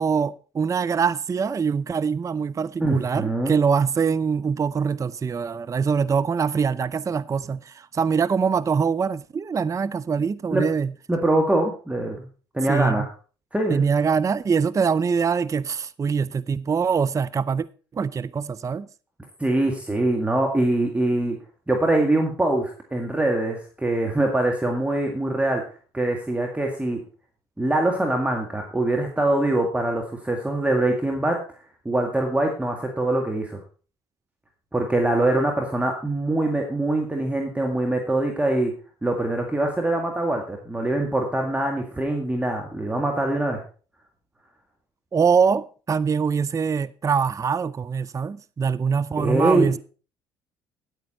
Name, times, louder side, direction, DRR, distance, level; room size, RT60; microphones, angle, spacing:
voice 1, 0.0-10.9 12.7-13.1 13.7-17.7 17.9-18.9 45.1-49.8, right 6 dB, 25° right, 0.5 m, -23 dB
voice 2, 2.8-3.5 10.5-10.6 11.1-12.3 12.5-13.1 13.5-13.8 19.4-21.4 21.7-25.6 25.9-27.0 27.6-31.4 31.9-33.6 34.7-38.7 39.0-43.6 49.2-49.8, right 2 dB, 10° right, 2.0 m, -23 dB
9.5 x 9.1 x 4.3 m
hypercardioid pair, 55°, 12 cm